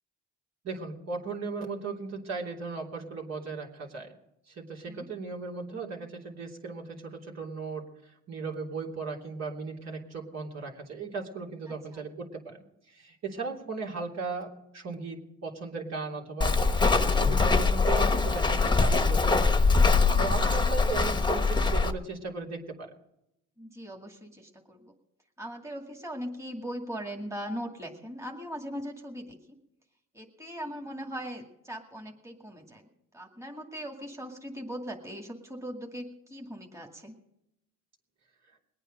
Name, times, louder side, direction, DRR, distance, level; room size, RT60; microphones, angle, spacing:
voice 1, 0.6-4.1 4.5-16.6 16.9-19.5 20.2-22.9, right 4 dB, 60° right, 0 dB, 3.2 m, -37 dB
Walk footsteps, 16.4-21.9, left 4 dB, 15° left, 1.0 m, -23 dB
voice 2, 20.1-20.5 23.6-24.9 25.4-29.6 30.1-32.9 33.1-37.2, equal, 10° right, 1 dB, 2.2 m, -40 dB
21.0 x 9.1 x 5.2 m, 0.83 s
cardioid pair, 90°, 30 cm